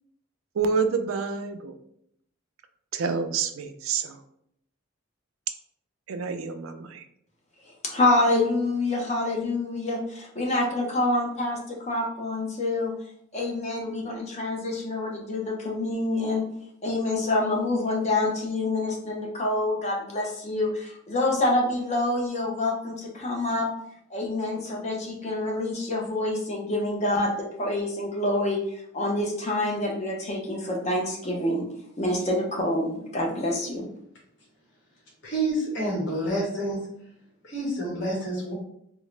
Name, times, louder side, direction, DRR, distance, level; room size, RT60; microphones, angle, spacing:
voice 1, 0.6-1.7 2.9-4.2 6.1-7.0, right 5 dB, 80° right, 8 dB, 0.4 m, -28 dB
voice 2, 7.8-12.9 13.3-16.5 16.8-23.7 24.1-28.6 28.9-31.6 32.0-33.9, left 2 dB, 35° left, -1 dB, 0.6 m, -27 dB
voice 3, 35.2-36.8 37.4-38.5, right 1 dB, 60° left, -4 dB, 1.3 m, -28 dB
3.6 x 2.0 x 3.1 m, 0.72 s
head